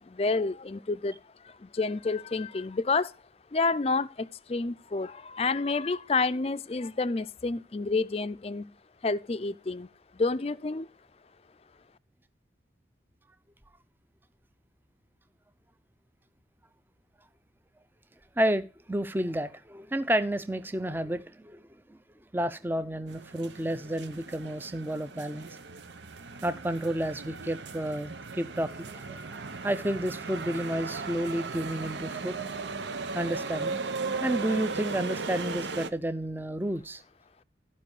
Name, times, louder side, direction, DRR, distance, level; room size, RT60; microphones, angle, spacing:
voice 1, 0.0-3.1 3.5-8.7 9.0-9.9 10.1-10.9, left 3 dB, 35° left, 0.4 m, -29 dB
voice 2, 18.4-21.6 21.9-22.0 22.3-25.5 26.4-29.2 29.6-32.4 33.1-33.8 34.2-37.0, right 1 dB, 10° right, 0.6 m, -31 dB
sound 1, 23.1-35.9, right 4 dB, 85° right, 1.0 m, -37 dB
14.0 x 5.3 x 4.8 m
head